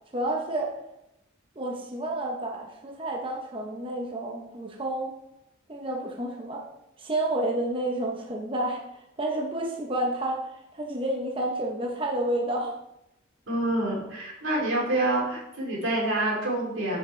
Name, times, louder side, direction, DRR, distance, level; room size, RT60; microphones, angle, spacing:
voice 1, 0.1-0.7 1.6-5.1 5.7-6.6 7.0-8.8 9.2-12.7, right 1 dB, 25° right, -1 dB, 0.9 m, -30 dB
voice 2, 13.5-17.0, right 1 dB, 90° right, -3 dB, 3.2 m, -27 dB
8.3 x 6.5 x 3.3 m, 0.85 s
head